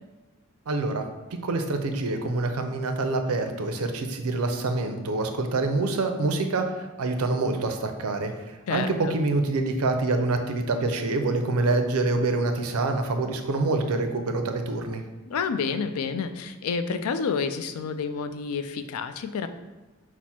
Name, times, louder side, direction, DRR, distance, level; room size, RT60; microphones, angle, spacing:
voice 1, 0.7-1.0 1.3-15.0, right 3 dB, 80° right, 6 dB, 0.5 m, -26 dB
voice 2, 8.7-9.2 15.3-19.5, left 5 dB, 75° left, 10 dB, 0.4 m, -29 dB
5.9 x 2.1 x 4.2 m, 1.1 s
head